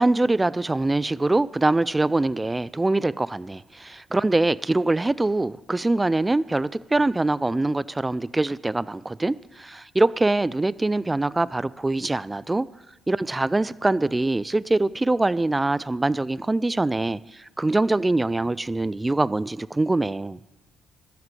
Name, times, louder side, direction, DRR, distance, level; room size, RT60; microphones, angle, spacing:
voice 1, 0.0-12.7 13.1-20.4, right 2 dB, 15° right, 19 dB, 0.3 m, -23 dB
12.5 x 6.2 x 7.6 m, 1.0 s
cardioid pair, 90°, 0 cm